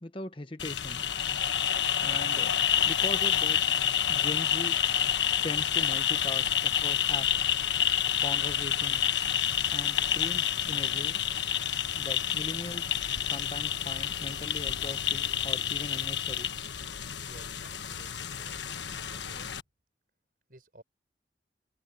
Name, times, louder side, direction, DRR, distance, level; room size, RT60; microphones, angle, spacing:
voice 1, 0.0-1.0 2.0-2.6 2.9-3.6 4.1-4.8 5.4-7.6 8.2-9.1 9.7-11.2 11.9-16.5, left 1 dB, 30° left, 1.0 m, -40 dB
sound 1, 0.6-19.6, left 9 dB, 80° left, 1.3 m, -29 dB
voice 2, 17.3-18.6 19.1-19.5 20.5-20.8, right 1 dB, 50° right, 7.3 m, -54 dB
head